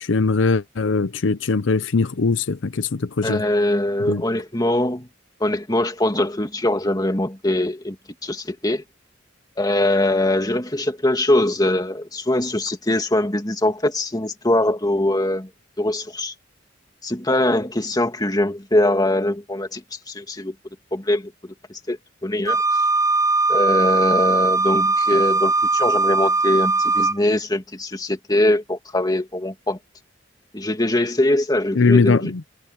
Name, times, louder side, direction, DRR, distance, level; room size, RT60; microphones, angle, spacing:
voice 1, 0.0-3.4 4.0-4.2 31.8-32.4, left 4 dB, 80° left, 0.7 m, -20 dB
voice 2, 3.2-5.1 5.4-8.0 8.2-8.8 9.6-15.5 15.8-16.3 17.0-20.5 20.9-22.6 23.5-29.8 30.5-32.3, left 1 dB, 20° left, 2.3 m, -22 dB
Wind instrument woodwind instrument, 22.5-27.2, right 3 dB, 15° right, 0.5 m, -19 dB
head